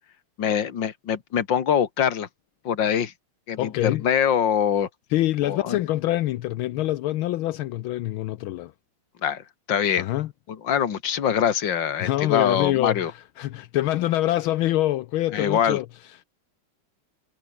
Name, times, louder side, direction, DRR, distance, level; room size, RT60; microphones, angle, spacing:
voice 1, 0.4-2.3 2.6-3.1 3.5-4.9 5.4-5.8 9.2-10.1 10.5-13.1 15.3-15.8, left 8 dB, 60° left, 2.4 m, -24 dB
voice 2, 3.6-4.0 5.1-8.7 10.0-10.3 12.0-15.9, left 15 dB, 80° left, 1.5 m, -25 dB
omnidirectional pair, 2.3 m